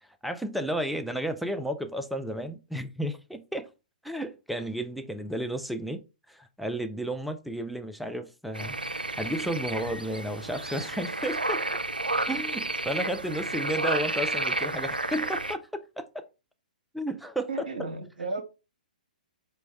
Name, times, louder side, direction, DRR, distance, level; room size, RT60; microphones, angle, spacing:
voice 1, 0.0-3.7 4.0-6.0 6.3-11.6 12.3-16.2 16.9-17.9, right 1 dB, ahead, 0.3 m, -33 dB
sound 1, 8.5-15.5, right 2 dB, 85° right, 0.4 m, -31 dB
voice 2, 17.5-18.4, right 3 dB, 65° right, 0.8 m, -33 dB
5.1 x 2.2 x 3.2 m
figure-of-eight pair, 115°, 5 cm